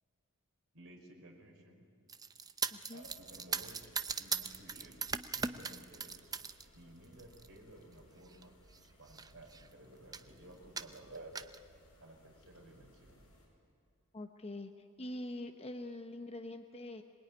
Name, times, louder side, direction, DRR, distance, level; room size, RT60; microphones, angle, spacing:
voice 1, 0.7-1.8 2.9-3.9 4.2-6.3 6.7-8.5 9.0-11.3 12.0-13.2, right 1 dB, 60° right, -1 dB, 5.1 m, -55 dB
sound 1, 2.1-6.6 7.0-7.5 8.3-8.4 8.7-8.8 9.1-9.7 10.1-10.3 10.8-11.6, right 5 dB, 15° right, 0.6 m, -39 dB
voice 2, 2.7-3.0 14.1-17.0, left 1 dB, 30° left, 5 dB, 1.0 m, -44 dB
sound 2, 3.0-13.5, equal, 85° left, 7.4 m, -64 dB
25.5 x 20.5 x 9.7 m, 2.2 s
head